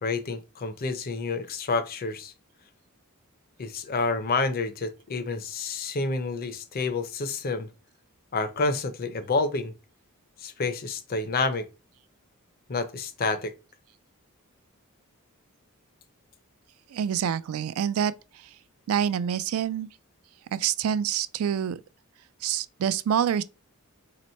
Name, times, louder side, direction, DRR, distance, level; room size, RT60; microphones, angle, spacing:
voice 1, 0.0-2.3 3.6-7.7 8.3-9.7 10.4-11.7 12.7-13.5, left 3 dB, 45° left, 0.6 m, -29 dB
voice 2, 16.9-18.1 18.9-19.9 20.5-21.8 22.4-23.4, right 8 dB, 70° right, 0.3 m, -26 dB
3.0 x 2.9 x 4.3 m
head